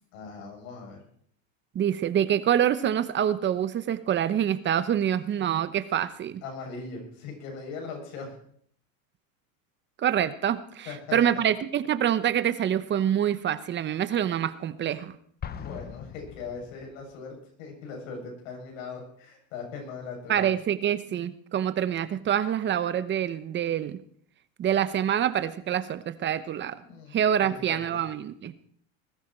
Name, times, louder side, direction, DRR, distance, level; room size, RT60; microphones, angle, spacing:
voice 1, 0.1-1.0 6.4-8.3 10.9-11.4 15.5-20.5 26.8-28.0, left 4 dB, 75° left, 1 dB, 7.9 m, -40 dB
voice 2, 1.7-6.4 10.0-15.2 20.3-24.0 24.6-26.8 27.1-28.5, right 10 dB, 30° right, 13 dB, 1.0 m, -26 dB
Explosion, 15.4-17.2, left 8 dB, 25° left, 1.0 m, -40 dB
20.5 x 13.5 x 4.5 m, 0.62 s
supercardioid pair, 135°, 40 cm